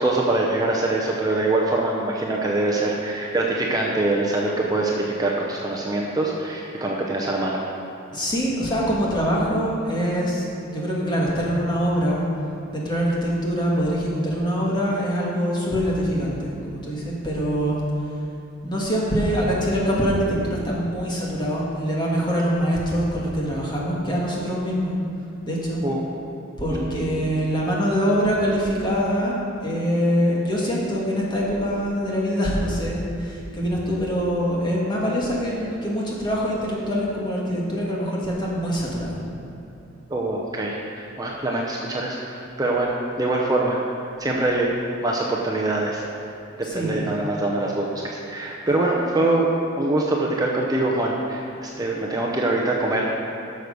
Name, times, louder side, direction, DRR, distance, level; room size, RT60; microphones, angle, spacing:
voice 1, 0.0-7.6 25.8-26.0 26.7-26.9 40.1-44.7 45.0-46.0 46.7-49.5 49.8-53.2, right 2 dB, 20° right, -2 dB, 0.7 m, -24 dB
voice 2, 8.1-12.2 12.7-17.8 18.6-24.9 25.4-25.8 26.6-39.2 46.6-47.1, equal, 20° left, -4 dB, 1.7 m, -24 dB
11.5 x 6.4 x 5.2 m, 2.8 s
head